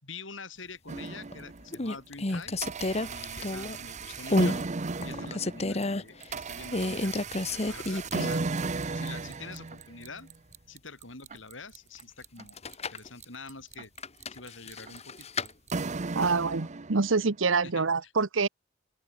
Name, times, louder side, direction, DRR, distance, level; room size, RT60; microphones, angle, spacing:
voice 1, 0.0-2.6 3.1-4.6 5.0-7.2 7.5-8.4 8.9-10.3 10.7-12.6 12.9-13.9 14.3-15.3 17.6-18.1, left 4 dB, 75° left, 7.7 m, -46 dB
sound 1, 0.9-1.3 1.7-3.9 4.3-4.6 5.0-6.0 6.7-8.5 8.8-8.9 12.4-13.1 14.0-15.5, left 2 dB, 35° left, 1.5 m, -30 dB
sound 2, 0.9-1.8 2.3-17.3, right 3 dB, 40° right, 0.8 m, -36 dB
voice 2, 16.1-18.5, right 4 dB, 85° right, 1.0 m, -26 dB
open air
head